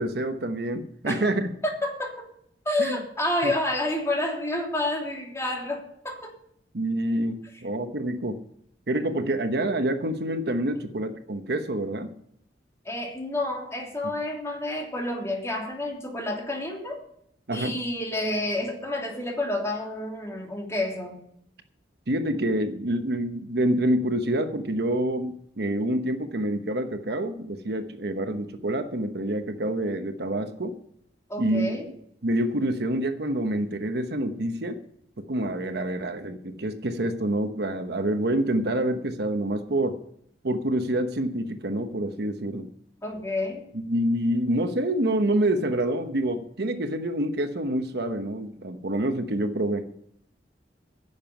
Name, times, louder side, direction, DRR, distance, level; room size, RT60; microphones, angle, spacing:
voice 1, 0.0-1.5 2.8-3.0 3.4-3.5 6.7-8.4 8.9-12.1 17.5-17.7 22.1-30.7 31.4-31.7 32.2-34.8 35.2-40.0 40.4-42.7 43.7-49.8, right 1 dB, 65° right, 8 dB, 1.0 m, -27 dB
voice 2, 1.6-2.2 2.6-6.3 10.7-10.8 12.8-17.0 17.5-21.2 31.3-31.9 43.0-43.6, left 1 dB, 15° left, 0 dB, 3.0 m, -29 dB
11.0 x 7.2 x 9.1 m, 0.69 s
head